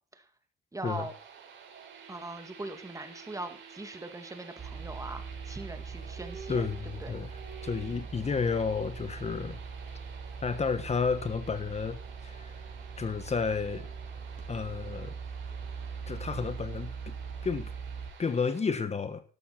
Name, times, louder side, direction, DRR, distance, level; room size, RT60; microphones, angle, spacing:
voice 1, 0.7-1.1 2.1-6.7 7.0-7.2, right 2 dB, 15° right, 8 dB, 2.3 m, -41 dB
sound 1, 0.8-18.6, right 6 dB, 70° right, 4.6 m, -51 dB
sound 2, 4.6-18.1, right 5 dB, 40° right, 4.6 m, -41 dB
voice 2, 6.5-7.3 7.6-9.6 10.4-12.6 13.0-13.9 14.5-15.2 16.1-17.1 17.4-17.7 18.2-19.2, left 5 dB, 35° left, 11 dB, 1.3 m, -31 dB
12.5 x 12.0 x 4.3 m, 0.39 s
cardioid pair, 90°, 20 cm